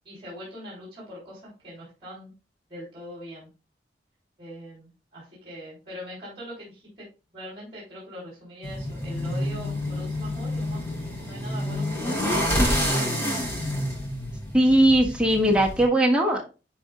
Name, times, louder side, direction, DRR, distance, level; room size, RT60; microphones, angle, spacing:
voice 1, 0.0-2.3 2.7-3.5 4.4-7.1 7.3-10.8 11.2-12.7, equal, 30° right, -5 dB, 3.3 m, -42 dB
sound 1, 8.6-15.8, left 1 dB, 15° left, 3.0 m, -28 dB
voice 2, 14.5-16.5, right 1 dB, 5° right, -2 dB, 1.5 m, -20 dB
10.5 x 4.5 x 2.3 m, 0.30 s
head